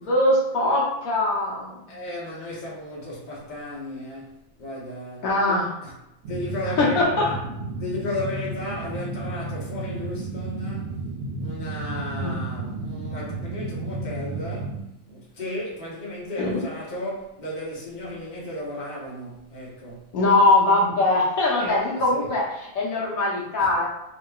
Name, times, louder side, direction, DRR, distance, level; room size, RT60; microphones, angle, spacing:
voice 1, 0.0-2.0 5.2-5.7 6.8-7.2 12.2-12.4 16.4-16.6 20.1-22.5 22.7-23.9, left 2 dB, 90° left, 1.3 m, -21 dB
voice 2, 1.9-5.9 6.3-7.4 7.8-11.0 11.4-20.2 21.6-22.3 23.6-23.7, left 1 dB, 35° left, 1.0 m, -34 dB
sound 1, 6.2-14.8, right 2 dB, 75° right, 0.9 m, -32 dB
3.0 x 2.7 x 2.3 m
omnidirectional pair, 1.4 m